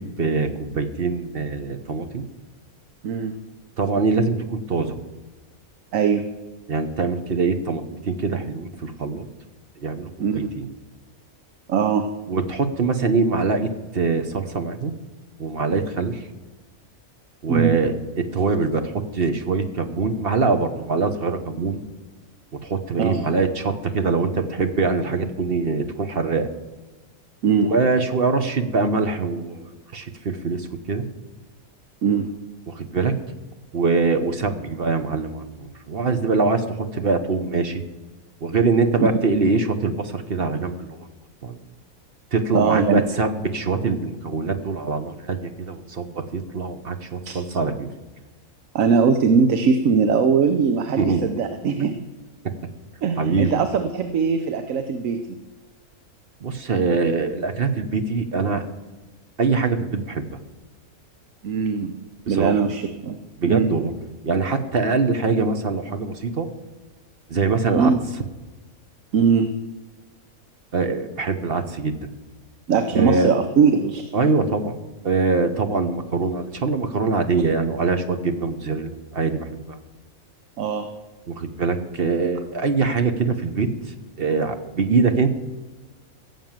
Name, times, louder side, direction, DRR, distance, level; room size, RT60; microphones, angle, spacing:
voice 1, 0.0-2.2 3.8-5.0 6.7-9.3 9.8-10.7 12.3-14.9 15.4-16.3 17.4-21.8 22.6-26.5 27.6-31.0 32.7-33.1 33.7-37.8 38.4-41.1 41.4-41.6 42.3-47.9 51.0-51.2 53.2-53.6 56.4-58.7 59.4-60.4 62.3-62.6 63.4-63.9 64.2-66.5 67.3-67.9 70.7-72.1 72.9-73.3 74.1-74.7 75.0-79.8 81.3-83.7 84.2-85.3, right 4 dB, 45° right, 8 dB, 1.1 m, -23 dB
voice 2, 3.0-3.4 5.9-6.3 10.2-10.5 11.7-12.1 17.5-17.8 23.0-23.2 27.4-27.7 32.0-32.3 42.5-43.0 47.3-47.4 48.7-51.9 53.0-55.2 61.4-61.9 62.3-63.2 63.5-63.7 67.7-68.0 69.1-69.5 72.7-74.1 80.6-80.9, right 6 dB, 65° right, 8 dB, 1.2 m, -20 dB
16.0 x 7.5 x 7.4 m, 1.2 s
omnidirectional pair, 1.5 m